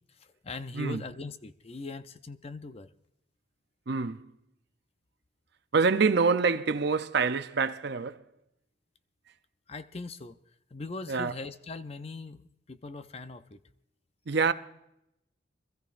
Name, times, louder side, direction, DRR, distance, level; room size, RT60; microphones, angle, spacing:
voice 1, 0.2-2.9 9.7-10.4 10.7-12.4 12.7-13.6, left 3 dB, 30° left, 0.5 m, -40 dB
voice 2, 3.9-4.3 5.7-8.2 11.1-11.3 14.3-14.5, right 4 dB, 55° right, 0.6 m, -26 dB
25.5 x 14.0 x 2.5 m
head